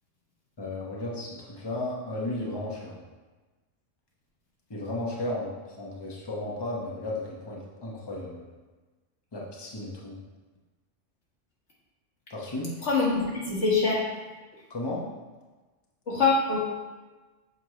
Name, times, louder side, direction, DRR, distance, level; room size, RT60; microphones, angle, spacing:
voice 1, 0.6-3.0 4.7-8.4 9.3-10.2 12.3-12.7 14.7-15.1, left 2 dB, 20° left, -4 dB, 0.9 m, -34 dB
voice 2, 12.8-14.0 16.1-16.6, left 3 dB, 70° left, -6 dB, 1.8 m, -24 dB
7.1 x 4.4 x 3.2 m, 1.3 s
omnidirectional pair, 1.3 m